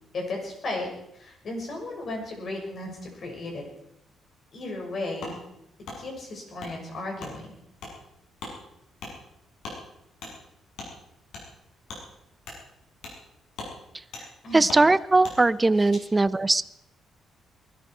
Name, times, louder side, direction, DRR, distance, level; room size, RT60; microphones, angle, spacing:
voice 1, 0.1-0.9 1.1-3.6 4.5-5.4 6.0-7.5 14.4-14.7 15.7-16.1, left 2 dB, 55° left, 1 dB, 6.4 m, -35 dB
Wood, 5.2-5.4 5.8-6.0 6.6-6.7 7.2-7.3 7.8-7.9 8.4-8.5 9.0-9.1 9.6-9.8 10.2-10.3 10.8-10.9 11.3-11.4 11.9-12.0 12.4-12.6 13.0-13.2 13.5-13.7 14.1-14.2 14.7-14.8 15.2-15.4, left 3 dB, 80° left, 7.0 m, -38 dB
voice 2, 14.5-16.6, right 2 dB, 20° right, 16 dB, 0.6 m, -20 dB
20.0 x 14.0 x 4.9 m, 0.79 s
cardioid pair, 90°, 0 cm